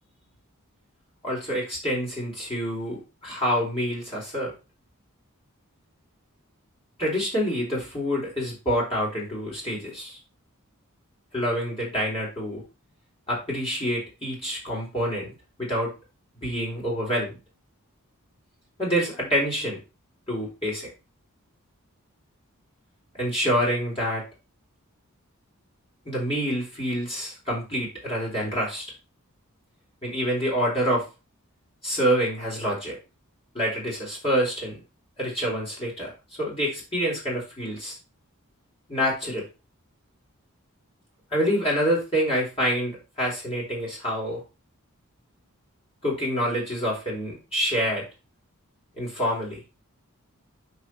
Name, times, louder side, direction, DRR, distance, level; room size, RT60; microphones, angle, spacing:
voice 1, 1.2-4.5 7.0-10.2 11.3-12.6 13.3-15.3 15.6-15.9 16.4-17.4 18.8-19.8 20.3-20.9 23.2-24.2 26.1-28.8 30.0-31.1 31.8-33.0 33.5-34.8 35.2-36.1 36.4-38.0 38.9-39.4 41.3-44.4 46.0-48.0 48.9-49.7, equal, 25° left, -5 dB, 4.1 m, -27 dB
8.0 x 5.9 x 4.7 m, 0.29 s
head